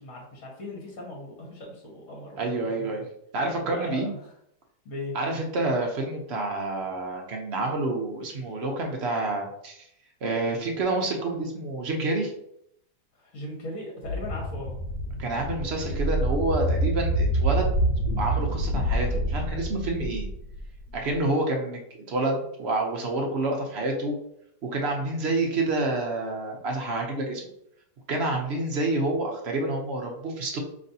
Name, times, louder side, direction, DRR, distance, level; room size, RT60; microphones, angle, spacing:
voice 1, 0.0-3.0 3.6-4.3 4.8-5.1 13.1-14.7 25.0-25.2, left 1 dB, 50° left, -2 dB, 1.3 m, -38 dB
voice 2, 2.4-3.0 3.3-4.1 5.1-9.9 10.2-12.3 15.2-17.7 18.2-20.3 20.9-21.8 22.1-24.2 24.6-27.5 28.1-30.6, right 2 dB, 55° right, 1 dB, 0.7 m, -28 dB
sound 1, 14.0-21.1, right 1 dB, 75° left, 1.3 m, -27 dB
5.2 x 3.1 x 2.7 m, 0.74 s
omnidirectional pair, 1.9 m